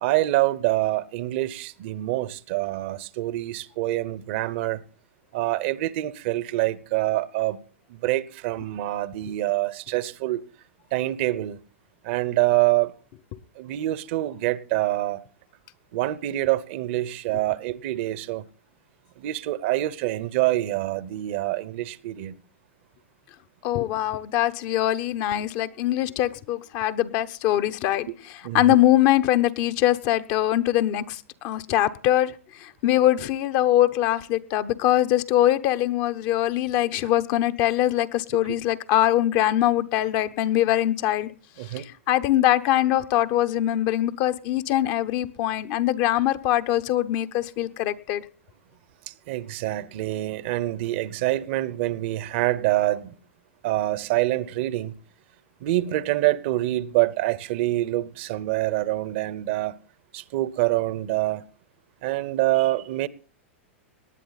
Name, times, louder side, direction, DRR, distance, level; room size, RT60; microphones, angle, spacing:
voice 1, 0.0-4.8 5.3-7.6 7.9-10.4 10.9-11.6 12.0-12.9 13.6-15.2 15.9-18.4 19.2-22.3 28.4-28.6 41.6-41.9 49.1-53.2 53.6-54.9 55.6-59.8 60.1-61.5 62.0-63.1, right 16 dB, 55° right, 0.8 m, -26 dB
voice 2, 23.6-28.1 28.5-32.3 32.6-41.3 41.8-48.2, left 13 dB, 50° left, 0.8 m, -22 dB
18.5 x 10.0 x 4.1 m
hypercardioid pair, 105°, 7 cm